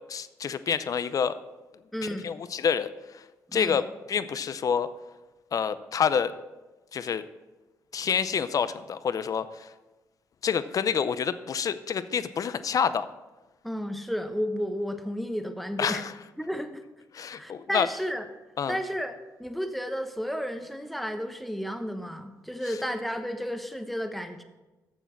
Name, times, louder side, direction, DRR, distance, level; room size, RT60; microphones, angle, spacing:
voice 1, 0.1-1.4 2.0-3.2 3.5-4.9 5.5-6.3 6.9-7.2 7.9-9.7 10.4-13.1 15.8-16.1 17.1-17.9 18.6-18.8, left 7 dB, 55° left, 14 dB, 0.6 m, -28 dB
voice 2, 1.9-2.3 3.5-3.8 13.6-16.0 16.4-16.8 17.4-18.3 18.7-24.4, equal, ahead, 7 dB, 1.0 m, -32 dB
10.0 x 7.1 x 4.6 m, 1.1 s
supercardioid pair, 65°, 7 cm